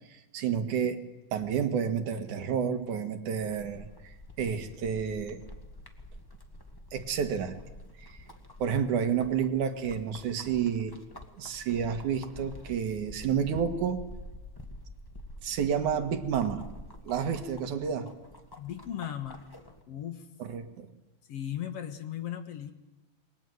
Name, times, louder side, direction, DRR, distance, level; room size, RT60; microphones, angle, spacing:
voice 1, 0.1-1.0 1.3-5.4 6.9-7.6 8.0-8.2 8.6-11.0 11.4-14.0 15.4-16.7 17.0-18.1 20.4-20.9, right 7 dB, 80° right, 7 dB, 3.1 m, -30 dB
sound 1, 3.4-19.8, left 1 dB, 10° left, 1.3 m, -48 dB
voice 2, 18.6-19.5 19.9-20.3 21.3-22.7, left 10 dB, 60° left, 7 dB, 2.3 m, -37 dB
28.0 x 22.0 x 7.9 m, 1.1 s
omnidirectional pair, 3.4 m